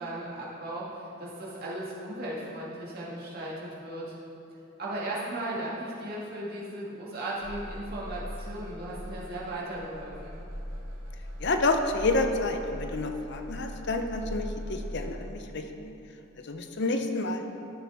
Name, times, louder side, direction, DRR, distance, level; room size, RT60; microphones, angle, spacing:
voice 1, 0.0-4.1 4.8-10.4, right 1 dB, 50° right, -6 dB, 2.0 m, -36 dB
sound 1, 7.3-15.2, equal, 80° right, 1.7 m, -40 dB
voice 2, 11.4-15.9 16.4-17.4, left 2 dB, 55° left, 5 dB, 0.7 m, -29 dB
13.0 x 7.2 x 3.5 m, 2.9 s
head